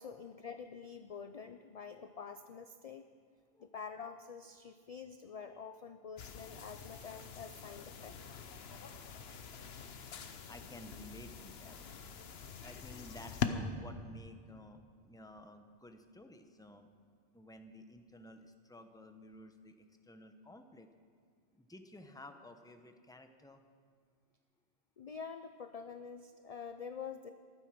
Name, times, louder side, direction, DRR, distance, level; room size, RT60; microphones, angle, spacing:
voice 1, 0.0-3.1 3.6-8.2 25.0-27.3, left 6 dB, 45° left, 8 dB, 0.5 m, -47 dB
sound 1, 6.2-13.5, left 7 dB, 70° left, 1.1 m, -44 dB
voice 2, 10.3-16.9 17.3-20.9 21.5-23.6, left 1 dB, 5° left, 6 dB, 0.8 m, -54 dB
14.5 x 12.5 x 6.0 m, 2.1 s
omnidirectional pair, 1.1 m